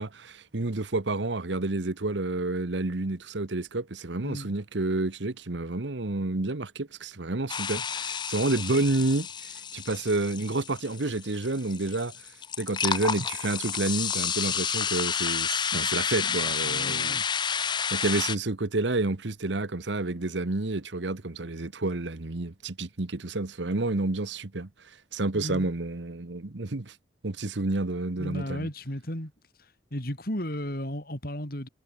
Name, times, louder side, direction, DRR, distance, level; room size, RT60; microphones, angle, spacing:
voice 1, 0.0-12.1 12.6-17.2 17.5-24.7 25.1-26.9 27.2-28.7, right 2 dB, 75° right, 1.2 m, -29 dB
voice 2, 4.2-4.5 16.6-17.2 25.3-25.7 28.2-29.3 29.9-31.7, equal, 55° left, 5.7 m, -34 dB
sound 1, 7.5-18.4, left 7 dB, 25° left, 0.5 m, -30 dB
head